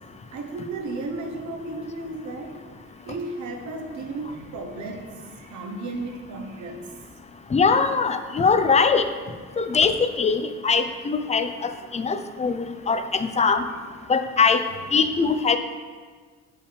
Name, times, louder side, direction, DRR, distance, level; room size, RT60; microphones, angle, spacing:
voice 1, 0.3-7.1, right 2 dB, 70° right, 3 dB, 1.0 m, -34 dB
voice 2, 7.5-9.0 9.6-13.0 13.4-13.6 14.1-14.6 14.9-15.6, left 5 dB, 20° left, 8 dB, 0.5 m, -21 dB
6.4 x 5.4 x 3.4 m, 1.5 s
cardioid pair, 90°, 30 cm